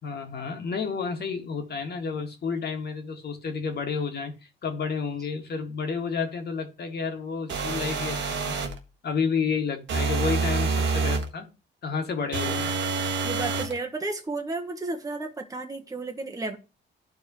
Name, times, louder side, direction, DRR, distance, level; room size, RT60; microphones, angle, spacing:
voice 1, 0.0-8.6 9.0-11.5 11.8-12.8, left 5 dB, 55° left, 2.1 m, -30 dB
sound 1, 7.5-8.8 9.9-11.3 12.3-13.8, right 4 dB, 70° right, 1.4 m, -27 dB
voice 2, 13.2-16.6, right 3 dB, 15° right, 1.2 m, -32 dB
13.5 x 4.7 x 3.1 m
cardioid pair, 90°, 20 cm